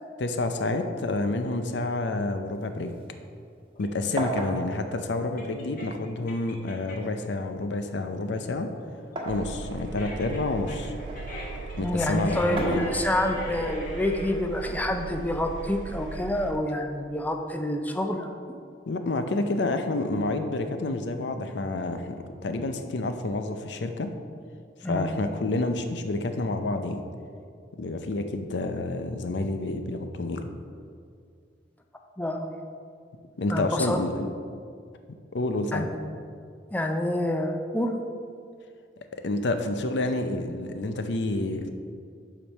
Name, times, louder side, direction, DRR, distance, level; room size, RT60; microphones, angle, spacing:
voice 1, 0.2-2.9 3.8-8.7 9.3-10.9 11.8-12.9 18.9-24.1 24.9-27.0 27.8-30.5 33.4-34.3 35.3-35.9 39.1-41.7, left 2 dB, 75° left, 7 dB, 0.6 m, -29 dB
sound 1, 2.5-3.8 4.2-6.1 7.0-9.5 10.0-11.3 12.3-13.5 14.6-15.6, right 1 dB, 30° right, 1.2 m, -36 dB
sound 2, 3.7-7.2 7.6-14.3, left 1 dB, 50° left, 1.7 m, -39 dB
Engine, 9.3-16.6, right 4 dB, 85° right, 0.5 m, -38 dB
voice 2, 11.8-18.3 24.8-25.1 32.2-32.6 33.5-34.0 35.7-36.0 36.7-38.0, left 1 dB, 10° left, 4 dB, 0.4 m, -28 dB
7.4 x 5.1 x 5.4 m, 2.2 s
head